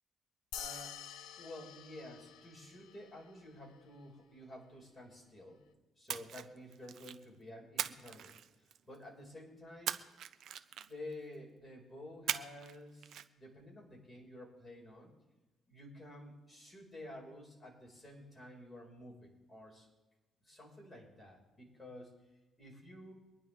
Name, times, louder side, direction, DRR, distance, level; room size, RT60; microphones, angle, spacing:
sound 1, 0.5-3.3, left 8 dB, 90° left, 1.2 m, -48 dB
voice 1, 0.5-1.0 1.4-5.6 6.0-10.0 10.8-15.1 15.7-19.9 20.4-22.1 22.6-23.1, left 1 dB, 15° left, -2 dB, 5.8 m, -51 dB
Splash splatter, 6.1-7.2 7.8-9.0 9.9-11.1 12.3-12.8 13.0-13.2, right 10 dB, 75° right, 0.7 m, -40 dB
24.0 x 10.5 x 3.7 m, 1.1 s
cardioid pair, 90°, 0 cm